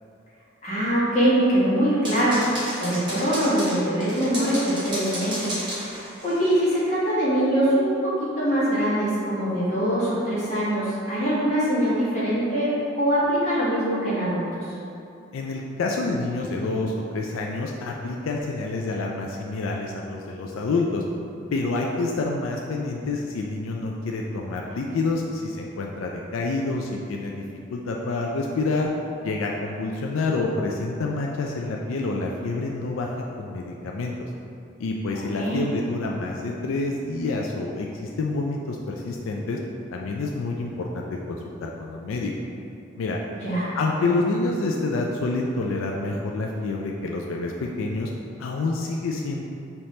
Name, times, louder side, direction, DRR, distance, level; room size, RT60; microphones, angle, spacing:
voice 1, 0.6-5.9 6.2-14.7 35.1-35.6 43.3-43.7, right 1 dB, 35° left, -9 dB, 1.3 m, -23 dB
sound 1, 2.0-6.6, right 1 dB, 25° right, 1.3 m, -33 dB
voice 2, 15.3-21.0 21.5-27.4 27.7-28.9 29.2-33.1 33.4-34.3 34.8-39.6 39.9-42.3 43.0-43.2 43.8-48.1 48.4-49.4, left 3 dB, 85° left, 0 dB, 0.4 m, -28 dB
5.5 x 2.9 x 3.2 m, 2.7 s
head